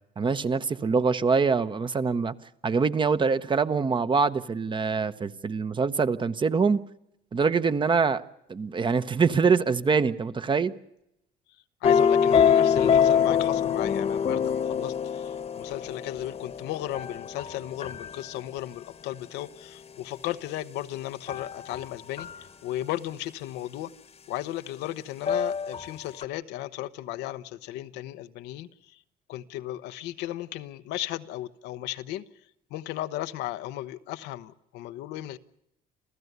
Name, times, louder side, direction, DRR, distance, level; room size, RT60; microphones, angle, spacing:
voice 1, 0.2-2.3 2.6-6.8 7.3-8.2 8.5-10.7, right 5 dB, 30° right, 1.0 m, -24 dB
voice 2, 11.8-22.3 22.6-23.9 24.3-28.7 29.3-32.2 32.7-35.4, left 14 dB, 90° left, 1.0 m, -35 dB
sound 1, 11.8-18.1 21.3-21.9 22.2-22.5 25.3-25.9 26.2-26.3, left 7 dB, 40° left, 1.2 m, -24 dB
28.0 x 15.0 x 8.1 m
cardioid pair, 110°, 17 cm